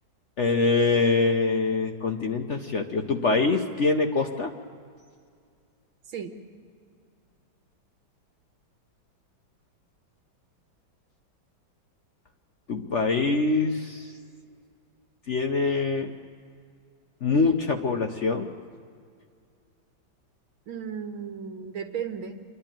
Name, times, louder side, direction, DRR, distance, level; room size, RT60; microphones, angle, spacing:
voice 1, 0.4-4.5 12.7-14.1 15.3-16.1 17.2-18.5, left 3 dB, 50° left, 4 dB, 0.9 m, -24 dB
voice 2, 20.7-22.4, right 7 dB, 85° right, 5 dB, 2.2 m, -35 dB
28.0 x 11.5 x 8.9 m, 2.2 s
omnidirectional pair, 2.2 m